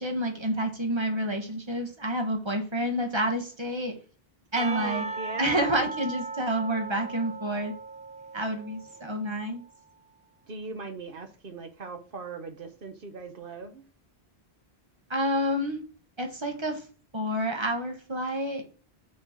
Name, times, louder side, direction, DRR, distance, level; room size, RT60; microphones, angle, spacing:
voice 1, 0.0-4.0 4.5-5.0 5.4-7.7 8.3-9.6 15.1-15.8 16.2-16.8 17.1-18.6, right 1 dB, 30° right, 1.2 m, -29 dB
voice 2, 4.5-5.9 10.5-13.8, right 4 dB, 60° right, 1.1 m, -39 dB
Percussion, 4.6-9.4, right 3 dB, 10° right, 0.7 m, -37 dB
6.5 x 3.3 x 5.7 m
omnidirectional pair, 1.0 m